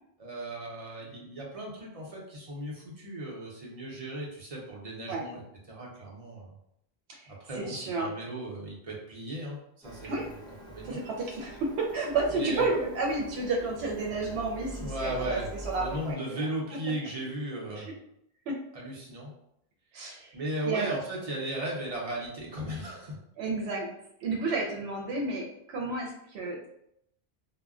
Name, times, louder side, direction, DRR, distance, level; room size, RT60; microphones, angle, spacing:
voice 1, 0.2-5.4 5.7-6.5 7.3-11.0 12.3-12.8 14.8-15.5 15.8-17.9 18.7-19.3 20.3-23.2, right 1 dB, 40° right, -3 dB, 0.7 m, -36 dB
voice 2, 7.1-8.1 10.0-10.2 10.8-16.4 17.8-17.9 18.5-18.6 19.9-20.3 20.7-20.9 23.4-23.9 24.2-26.7, right 3 dB, 85° right, 0 dB, 0.8 m, -31 dB
Printer, 9.8-16.1, right 1 dB, 5° left, 0.5 m, -44 dB
2.2 x 2.1 x 3.5 m, 0.75 s
omnidirectional pair, 1.1 m